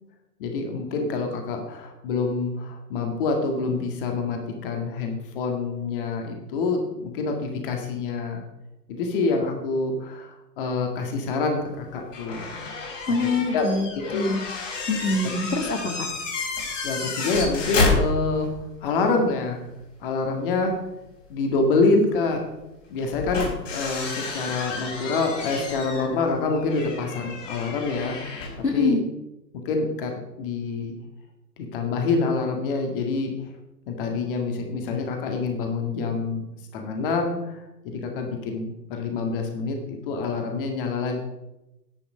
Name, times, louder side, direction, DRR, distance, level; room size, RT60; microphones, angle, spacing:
voice 1, 0.4-8.4 8.9-12.5 13.5-14.4 16.8-18.5 18.8-19.6 20.0-20.7 21.3-22.4 22.9-28.2 28.7-29.0 29.7-30.9 31.6-33.3 33.9-36.5 36.7-37.6 37.8-41.2, left 3 dB, 30° left, 3 dB, 1.9 m, -26 dB
sound 1, 12.1-18.6 18.9-19.0 21.1-21.2 23.0-28.7, left 3 dB, 45° left, 4.0 m, -30 dB
voice 2, 13.1-14.4 14.9-16.1 28.6-29.0, left 3 dB, 75° left, 4 dB, 2.2 m, -25 dB
10.5 x 9.5 x 5.3 m, 0.96 s
figure-of-eight pair, 120°, 50 cm